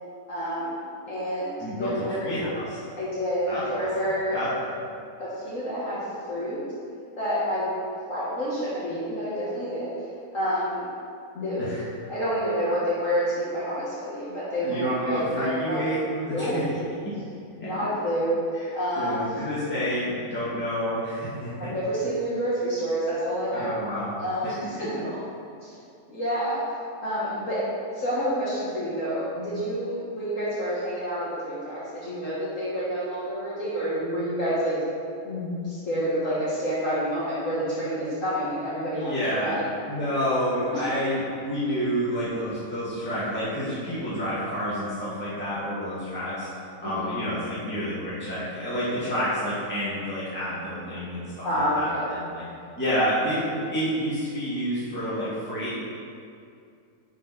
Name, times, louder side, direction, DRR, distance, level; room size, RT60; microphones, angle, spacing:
voice 1, 0.3-0.8 1.1-2.3 3.0-4.4 5.2-6.0 6.3-6.6 7.2-7.7 8.1-9.9 10.3-10.9 11.3-11.7 12.1-16.0 16.3-16.6 17.5-18.4 18.7-19.4 21.6-23.7 24.2-24.9 25.6-25.7 26.1-26.6 27.0-27.6 27.9-34.8 35.2-39.7 46.8-47.2 51.4-52.1, equal, 55° left, -10 dB, 2.0 m, -28 dB
voice 2, 1.6-1.9 2.2-2.8 3.5-3.6 4.3-4.5 11.6-11.8 14.6-16.6 17.6-17.7 18.5-18.7 19.0-21.7 23.5-24.1 24.4-24.5 24.8-24.9 38.9-39.5 39.9-46.5 46.8-51.5 51.7-52.5 52.8-55.8, equal, 5° left, -11 dB, 1.8 m, -29 dB
10.5 x 5.1 x 4.2 m, 2.4 s
omnidirectional pair, 1.6 m